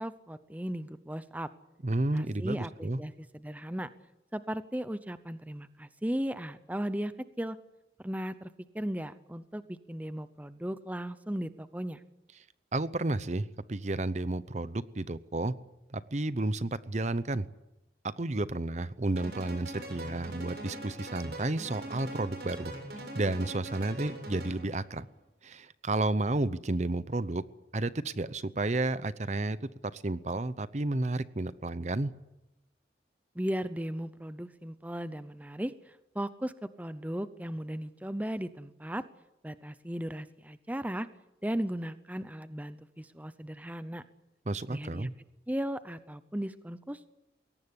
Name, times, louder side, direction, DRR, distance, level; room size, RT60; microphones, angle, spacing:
voice 1, 0.0-1.5 2.1-3.9 4.3-7.6 8.0-12.0 33.3-39.0 39.4-41.1 41.4-44.0 44.7-45.1 45.5-47.1, equal, 10° right, 13 dB, 0.7 m, -36 dB
voice 2, 1.8-3.0 12.7-15.5 15.9-17.5 18.0-22.7 23.1-25.1 25.4-27.4 27.7-29.6 29.8-32.1 44.5-45.1, right 2 dB, 40° right, 15 dB, 0.8 m, -31 dB
sound 1, 19.2-24.8, right 1 dB, 65° right, 7.3 m, -42 dB
21.5 x 18.0 x 9.8 m, 0.92 s
head